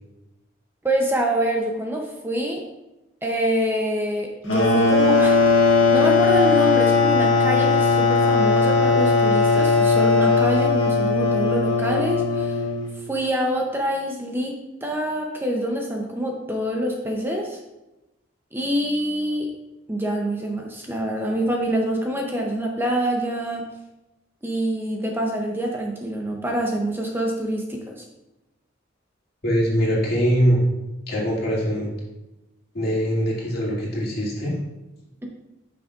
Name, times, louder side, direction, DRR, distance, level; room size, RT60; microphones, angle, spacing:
voice 1, 0.8-2.6 3.2-5.4 5.9-12.6 13.1-17.6 18.5-19.5 19.9-23.7 24.4-28.0, right 1 dB, 10° right, 1 dB, 0.6 m, -26 dB
sound 1, 4.5-13.0, left 4 dB, 85° left, 1.5 m, -18 dB
voice 2, 29.4-30.6 31.1-31.9 32.7-34.6, equal, 55° left, -5 dB, 2.3 m, -22 dB
8.9 x 6.1 x 2.4 m, 0.99 s
head